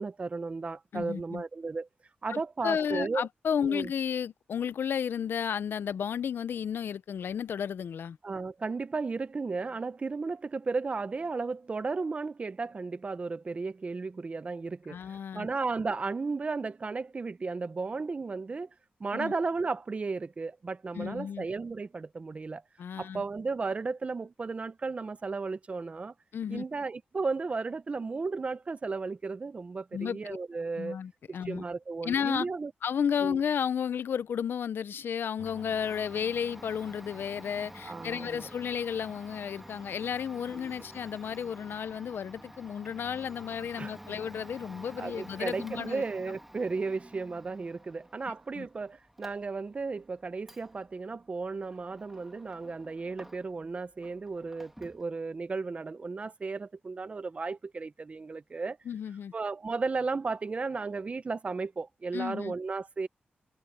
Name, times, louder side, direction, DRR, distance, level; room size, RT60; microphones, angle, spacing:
voice 1, 0.0-1.9 2.2-3.3 3.6-3.9 8.2-18.7 19.0-22.6 23.0-26.1 26.5-31.0 31.3-32.7 33.2-33.4 37.8-38.5 40.5-40.7 43.8-43.9 45.0-58.8 59.3-63.1, right 4 dB, 35° right, 0.7 m, -34 dB
voice 2, 0.9-1.4 2.3-8.2 14.9-15.5 19.1-19.3 20.9-21.4 22.8-23.2 26.3-26.6 29.9-30.4 30.8-31.6 32.0-32.5 32.8-46.0 48.6-48.7 58.9-59.3 62.1-62.5, left 8 dB, 85° left, 0.5 m, -33 dB
Domestic sounds home sounds, 35.4-53.7 54.0-55.1, right 1 dB, 5° right, 1.8 m, -50 dB
wide cardioid pair, 120°, 4 cm